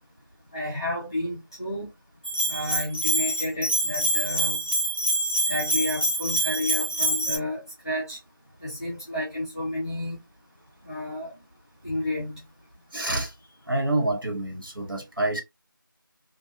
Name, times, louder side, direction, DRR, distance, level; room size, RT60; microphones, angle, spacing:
voice 1, 0.5-1.9 2.5-4.6 5.5-8.2 8.6-10.2 10.8-11.3 11.8-12.3, left 1 dB, 10° left, 0.8 m, -31 dB
Bell, 2.2-7.4, right 1 dB, 25° right, 0.5 m, -25 dB
voice 2, 12.9-13.3 13.7-15.4, right 2 dB, 75° right, 1.3 m, -27 dB
2.6 x 2.1 x 2.7 m
figure-of-eight pair, 175°, 12 cm